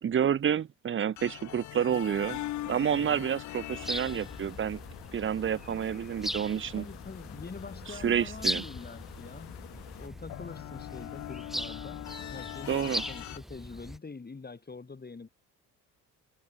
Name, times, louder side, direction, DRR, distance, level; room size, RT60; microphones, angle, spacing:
voice 1, 0.0-2.4 2.7-4.8 5.1-6.9 8.0-8.6 12.7-13.0, right 8 dB, 30° right, 0.6 m, -29 dB
sound 1, 1.2-13.4, left 15 dB, 40° left, 0.5 m, -43 dB
sound 2, 1.9-10.1, left 19 dB, 65° left, 1.1 m, -51 dB
voice 2, 2.9-3.3 6.8-9.6 10.0-12.0 12.3-15.3, left 4 dB, 20° left, 2.4 m, -45 dB
sound 3, 3.7-14.0, equal, ahead, 1.5 m, -40 dB
hypercardioid pair, 50°, 43 cm